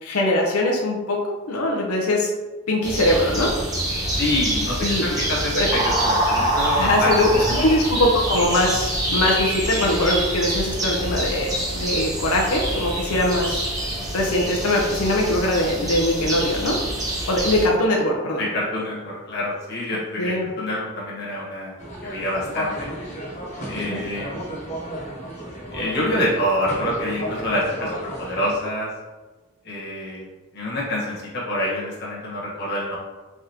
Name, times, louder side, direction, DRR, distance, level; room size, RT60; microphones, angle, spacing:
voice 1, 0.0-2.3 2.7-3.5 4.8-5.0 5.5-5.7 6.8-13.7 14.1-16.8 17.3-18.5 20.2-20.5 23.8-24.0, left 1 dB, 90° left, -1 dB, 0.6 m, -22 dB
sound 1, 2.8-17.7, right 1 dB, 15° right, 0.8 m, -25 dB
voice 2, 4.1-7.5 18.4-21.7 22.0-22.9 23.7-24.3 25.7-28.9 29.6-30.3 30.5-33.0, left 1 dB, 50° left, -5 dB, 1.2 m, -26 dB
sound 2, 21.8-28.6, equal, 30° left, 1.1 m, -33 dB
3.6 x 3.4 x 2.8 m, 1.2 s
head